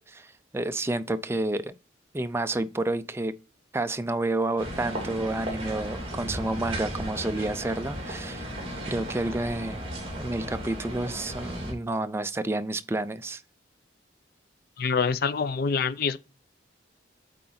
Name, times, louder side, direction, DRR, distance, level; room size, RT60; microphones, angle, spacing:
voice 1, 0.0-1.7 2.1-3.3 3.7-8.5 8.9-9.8 10.2-13.4, right 2 dB, 15° right, 0.4 m, -30 dB
sound 1, 4.6-11.7, equal, 30° right, 2.4 m, -35 dB
voice 2, 14.8-16.2, left 5 dB, 50° left, 0.5 m, -26 dB
8.3 x 3.8 x 3.9 m
head